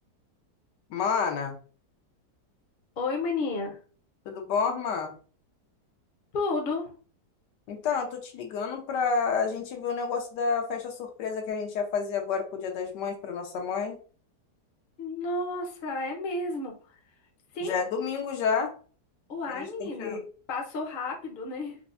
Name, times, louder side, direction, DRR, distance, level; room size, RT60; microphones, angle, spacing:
voice 1, 0.9-1.6 4.3-5.1 7.7-14.0 17.6-18.7 19.5-20.2, left 5 dB, 85° left, 3 dB, 1.3 m, -29 dB
voice 2, 3.0-3.8 6.3-6.9 15.0-16.7 17.5-17.8 19.3-21.8, left 3 dB, 50° left, 2 dB, 0.6 m, -32 dB
4.5 x 2.0 x 2.4 m, 0.39 s
omnidirectional pair, 1.8 m